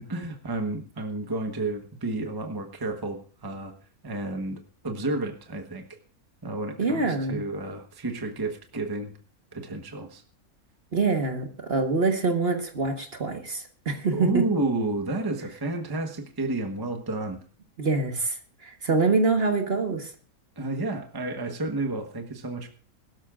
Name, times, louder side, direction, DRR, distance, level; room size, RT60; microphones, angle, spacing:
voice 1, 0.1-3.7 4.0-5.8 6.4-9.1 9.5-10.2 14.1-17.4 20.6-22.7, right 2 dB, 15° right, 4 dB, 1.1 m, -31 dB
voice 2, 6.8-7.4 10.9-14.5 17.8-20.1, right 3 dB, 45° right, 4 dB, 1.5 m, -25 dB
21.0 x 13.0 x 2.5 m, 0.41 s
omnidirectional pair, 1.6 m